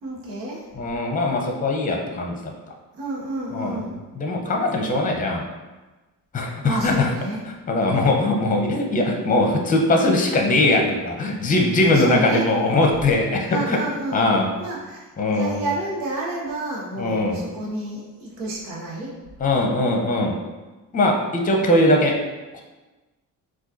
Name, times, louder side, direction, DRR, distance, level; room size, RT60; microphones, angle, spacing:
voice 1, 0.0-0.6 3.0-4.0 6.6-7.4 11.3-11.5 11.9-12.5 13.5-14.2 14.6-19.1, right 2 dB, 90° right, -3 dB, 0.7 m, -30 dB
voice 2, 0.7-2.5 3.5-3.8 4.2-5.4 6.3-7.1 7.7-13.8 14.1-14.5 15.2-15.6 17.0-17.4 19.4-20.4 20.9-22.2 22.5-22.6, left 2 dB, 15° left, 1 dB, 0.6 m, -20 dB
3.7 x 2.4 x 2.5 m, 1.2 s
hypercardioid pair, 40°, 49 cm